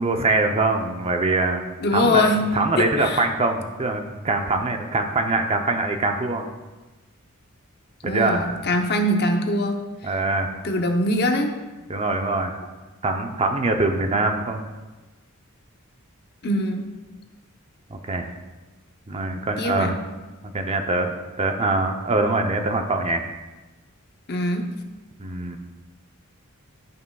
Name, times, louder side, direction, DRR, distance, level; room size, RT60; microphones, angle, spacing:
voice 1, 0.0-1.7 1.9-2.2 2.5-6.5 8.0-8.8 10.0-10.5 11.9-12.5 13.0-14.6 17.9-18.3 19.1-20.0 20.4-23.2 25.2-25.6, right 2 dB, 30° right, 5 dB, 0.6 m, -23 dB
voice 2, 1.8-2.4 2.8-3.2 8.1-10.1 10.6-11.5 16.4-16.9 19.6-20.0 24.3-24.7, left 1 dB, 50° left, 4 dB, 0.7 m, -23 dB
12.5 x 5.6 x 2.3 m, 1.2 s
head